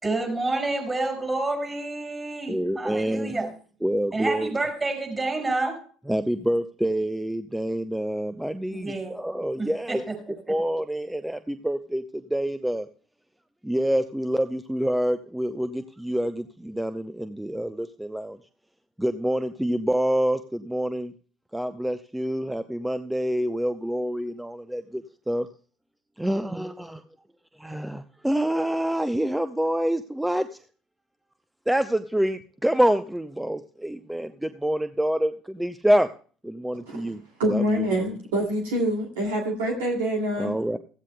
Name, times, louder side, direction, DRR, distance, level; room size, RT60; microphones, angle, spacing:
voice 1, 0.0-3.5 4.1-5.8 8.7-9.2 9.6-10.6, right 2 dB, 25° right, 3 dB, 5.6 m, -29 dB
voice 2, 2.5-3.3 3.8-4.5 6.1-10.0 10.5-12.0 12.3-12.9 13.6-18.4 19.0-21.1 21.5-25.5 26.2-27.0 27.6-30.5 31.7-36.1 36.4-37.2 37.5-37.9 40.4-40.8, equal, 5° right, 11 dB, 0.6 m, -26 dB
voice 3, 37.4-40.6, right 1 dB, 75° right, 1 dB, 2.4 m, -26 dB
15.5 x 15.0 x 2.2 m, 0.40 s
hypercardioid pair, 60°, 0 cm